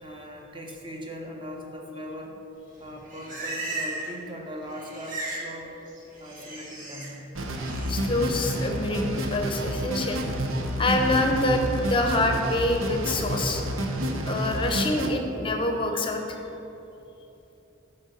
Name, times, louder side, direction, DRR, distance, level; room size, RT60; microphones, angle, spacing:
voice 1, 0.0-2.4 2.8-5.7 6.2-7.2, equal, 25° right, 0 dB, 0.9 m, -39 dB
Livestock farm animals working animals, 2.8-4.2 4.4-5.5 5.8-7.1 7.5-7.9, right 2 dB, 40° right, 1.6 m, -36 dB
sound 1, 7.3-15.1, equal, 90° right, 0.8 m, -29 dB
voice 2, 7.9-10.2 10.8-13.6 14.3-16.4, left 2 dB, 25° left, 3 dB, 0.7 m, -26 dB
8.7 x 4.4 x 6.5 m, 3.0 s
head